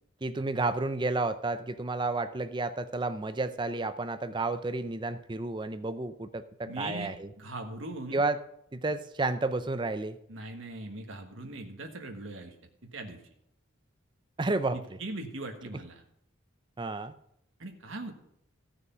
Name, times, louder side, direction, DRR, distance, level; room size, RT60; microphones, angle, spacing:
voice 1, 0.2-7.3 8.1-8.4 8.7-10.2 14.4-14.8 16.8-17.1, right 2 dB, 20° right, 11 dB, 0.5 m, -31 dB
voice 2, 6.6-8.2 10.3-12.5 12.8-13.2 14.7-16.0 17.6-18.1, right 2 dB, 70° right, 3 dB, 1.5 m, -40 dB
15.0 x 6.4 x 5.7 m, 0.76 s
head